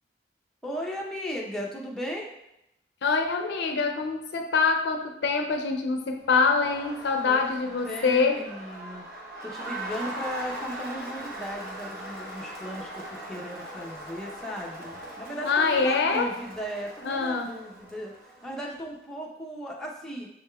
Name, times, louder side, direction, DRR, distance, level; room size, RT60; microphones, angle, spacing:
voice 1, 0.6-2.3 7.2-7.6 7.8-9.0 9.4-18.1 18.4-20.3, equal, 5° left, -3 dB, 0.7 m, -36 dB
voice 2, 3.0-8.4 15.4-16.3 17.0-17.5, left 4 dB, 70° left, 4 dB, 0.4 m, -25 dB
Crowd, 6.2-18.7, right 1 dB, 60° right, 1.0 m, -40 dB
6.5 x 3.4 x 2.3 m, 0.83 s
head